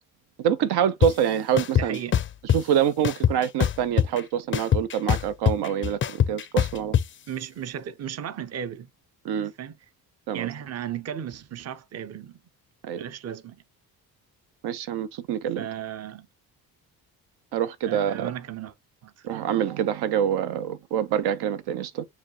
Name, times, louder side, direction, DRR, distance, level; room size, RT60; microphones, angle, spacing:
voice 1, 0.4-2.0 2.5-7.0 9.2-9.5 10.3-10.5 12.8-13.0 14.6-15.7 17.5-18.3 19.2-22.1, right 9 dB, 85° right, 0.7 m, -26 dB
sound 1, 1.0-1.1 1.6-2.6 3.0-4.2 4.5-7.0, left 9 dB, 35° left, 0.4 m, -22 dB
voice 2, 1.7-2.2 7.3-8.9 9.6-9.7 10.3-12.4 13.0-13.6 15.6-16.3 17.9-18.7 19.0-19.3, right 9 dB, 40° right, 0.6 m, -35 dB
7.1 x 2.4 x 2.9 m
cardioid pair, 105°, 38 cm